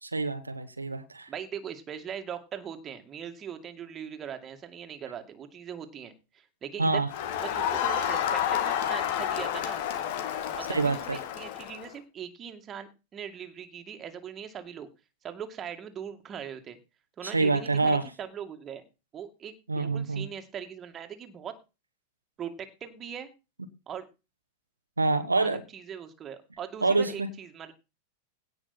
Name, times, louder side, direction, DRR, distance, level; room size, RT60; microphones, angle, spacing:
voice 1, 0.0-1.3 6.8-7.1 10.7-11.2 17.2-18.0 19.7-20.3 25.0-25.6 26.8-27.3, right 3 dB, 80° right, 9 dB, 1.3 m, -26 dB
voice 2, 1.3-7.0 7.4-9.8 10.5-14.9 15.2-16.8 17.2-18.8 19.1-21.6 22.4-23.3 23.9-24.1 25.4-27.7, right 8 dB, 25° right, 6 dB, 2.3 m, -40 dB
Crowd, 7.1-11.9, left 9 dB, 50° left, 1.7 m, -30 dB
17.0 x 6.1 x 4.3 m, 0.28 s
figure-of-eight pair, 90°, 0 cm